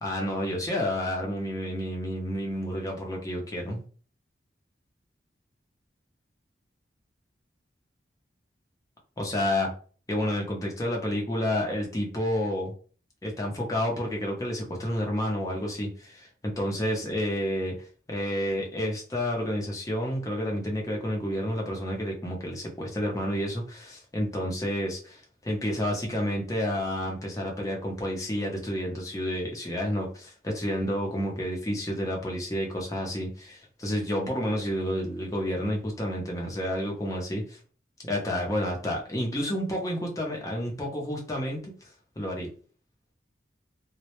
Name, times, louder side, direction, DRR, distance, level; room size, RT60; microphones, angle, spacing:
voice 1, 0.0-3.8 9.2-9.7 10.1-12.7 13.2-37.6 38.1-41.7 42.2-42.5, equal, 20° left, -1 dB, 0.5 m, -30 dB
2.1 x 2.0 x 2.9 m, 0.41 s
head